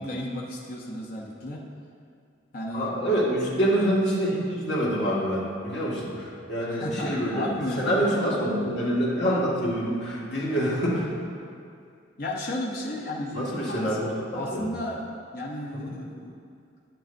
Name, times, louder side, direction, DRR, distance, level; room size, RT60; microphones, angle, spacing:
voice 1, 0.0-1.6 2.5-2.9 6.7-8.1 12.2-15.0 15.3-16.4, left 1 dB, 50° left, -3 dB, 0.8 m, -33 dB
voice 2, 2.7-7.5 7.8-11.1 13.3-14.7 15.7-15.9, equal, 65° left, -6 dB, 1.8 m, -26 dB
10.0 x 7.6 x 2.6 m, 2.3 s
head